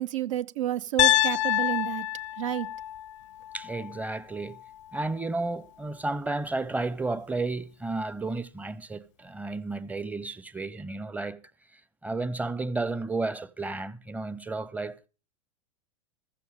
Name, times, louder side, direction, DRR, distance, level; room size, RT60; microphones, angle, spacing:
voice 1, 0.0-2.1 2.4-2.7, right 12 dB, 65° right, 0.8 m, -30 dB
Piano, 1.0-5.0, left 15 dB, 60° left, 0.5 m, -28 dB
voice 2, 3.5-4.6 4.9-11.4 11.7-15.1, right 3 dB, 10° right, 0.8 m, -32 dB
15.0 x 13.5 x 3.7 m
hypercardioid pair, 95°, 18 cm